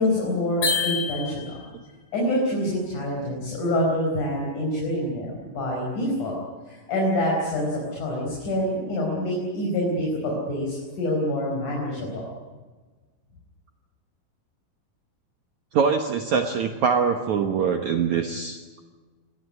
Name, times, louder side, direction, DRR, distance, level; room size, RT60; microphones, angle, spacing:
voice 1, 0.0-1.6 2.1-6.4 6.7-12.3, left 1 dB, 40° left, -2 dB, 5.9 m, -26 dB
sound 1, 0.6-1.8, left 5 dB, 85° left, 8.1 m, -27 dB
voice 2, 15.7-18.8, right 6 dB, 85° right, 5 dB, 1.6 m, -23 dB
24.5 x 18.0 x 9.7 m, 1.3 s
omnidirectional pair, 5.3 m